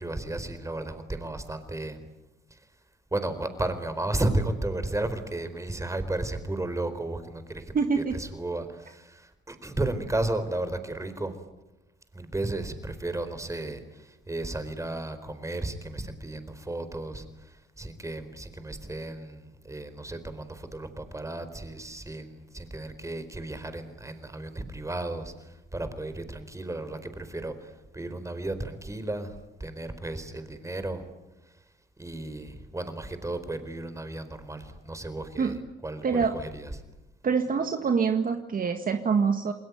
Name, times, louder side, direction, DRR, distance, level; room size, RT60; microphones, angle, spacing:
voice 1, 0.0-2.0 2.5-2.6 3.1-11.3 12.1-31.0 32.0-36.7, right 2 dB, 15° right, 10 dB, 4.4 m, -34 dB
voice 2, 7.7-8.2 35.4-35.6 36.0-36.4 37.2-39.5, right 5 dB, 45° right, 6 dB, 1.9 m, -25 dB
29.0 x 20.5 x 9.5 m, 0.98 s
cardioid pair, 90°, 20 cm